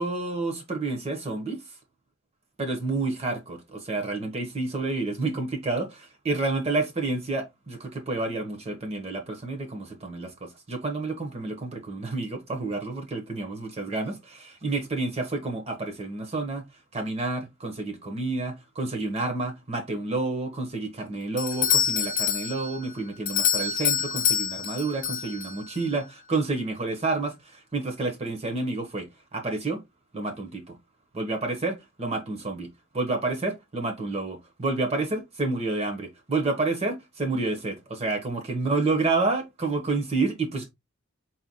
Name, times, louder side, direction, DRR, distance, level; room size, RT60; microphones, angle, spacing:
voice 1, 0.0-1.6 2.6-16.6 16.9-29.8 30.1-30.8 31.1-32.7 32.9-40.7, right 3 dB, 30° right, 1.1 m, -29 dB
Doorbell, 21.4-25.8, left 8 dB, 40° left, 1.2 m, -26 dB
4.5 x 4.2 x 2.2 m
head